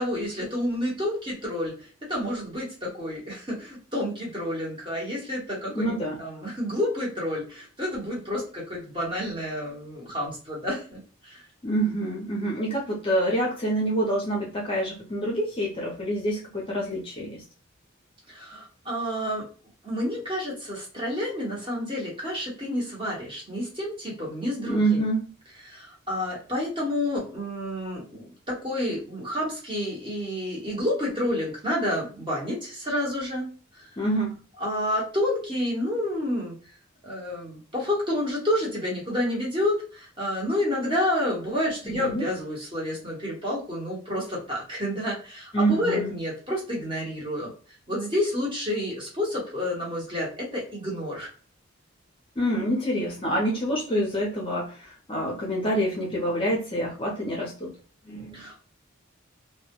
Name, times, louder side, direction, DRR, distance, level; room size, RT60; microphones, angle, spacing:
voice 1, 0.0-11.4 18.3-19.4 19.8-25.0 25.6-33.5 33.7-33.9 34.6-36.6 37.0-47.5 47.9-51.3 58.3-58.6, left 1 dB, 25° right, -4 dB, 0.9 m, -29 dB
voice 2, 5.7-6.2 11.6-17.4 24.6-25.3 34.0-34.4 41.8-42.2 45.5-46.1 52.4-57.7 58.0-58.4, right 1 dB, 25° left, -3 dB, 0.5 m, -27 dB
2.2 x 2.1 x 2.8 m, 0.39 s
head